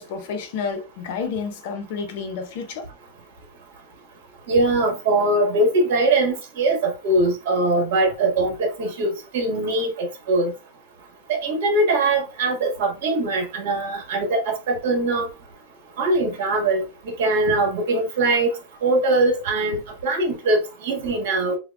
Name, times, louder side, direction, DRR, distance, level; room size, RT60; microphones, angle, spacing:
voice 1, 0.0-2.9, left 5 dB, 50° left, 0.8 m, -30 dB
voice 2, 4.5-10.5 11.3-15.3 16.0-18.5 18.8-21.6, right 2 dB, 60° right, 1.7 m, -22 dB
6.8 x 2.3 x 2.4 m
supercardioid pair, 180°, 0 cm